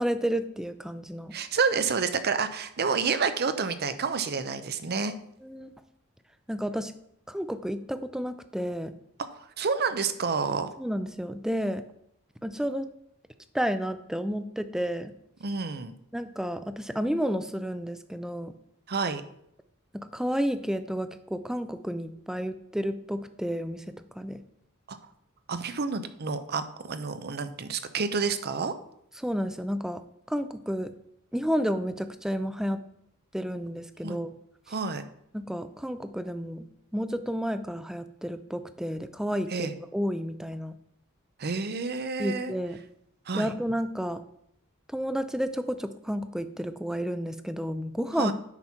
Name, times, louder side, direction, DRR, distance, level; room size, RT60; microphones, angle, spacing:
voice 1, 0.0-1.3 5.4-5.7 6.5-6.9 7.3-8.9 10.8-11.8 12.4-12.9 13.5-15.1 16.1-18.5 20.1-23.8 24.2-24.4 29.2-30.0 30.3-30.9 31.3-32.8 33.3-34.3 35.3-36.7 36.9-40.7 42.2-42.8 43.3-44.2 44.9-48.3, equal, 5° right, 11 dB, 0.4 m, -31 dB
voice 2, 1.3-5.1 9.3-10.7 15.4-15.9 18.9-19.2 24.9-25.0 25.5-28.7 34.0-34.2 34.7-35.0 39.5-39.7 41.4-42.5 43.3-43.5 48.2-48.3, right 5 dB, 50° right, 11 dB, 0.7 m, -29 dB
9.8 x 5.8 x 4.4 m, 0.74 s
head